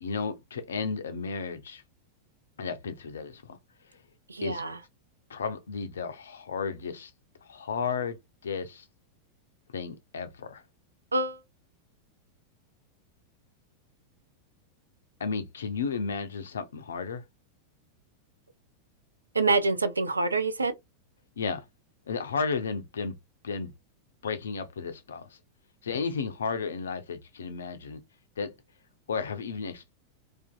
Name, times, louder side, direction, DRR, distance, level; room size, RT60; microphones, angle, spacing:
voice 1, 0.0-1.8 2.6-3.6 4.4-4.6 5.3-7.1 7.4-8.2 8.4-8.8 9.7-10.6 15.2-17.2 21.4-21.6 22.1-23.2 23.4-23.7 24.2-25.4 25.8-28.0 28.4-28.5 29.1-29.9, left 5 dB, 65° left, 0.4 m, -33 dB
voice 2, 4.3-4.8 11.1-11.4 19.3-20.7, right 3 dB, 80° right, 0.3 m, -26 dB
2.5 x 2.4 x 2.2 m
figure-of-eight pair, 90°, 0 cm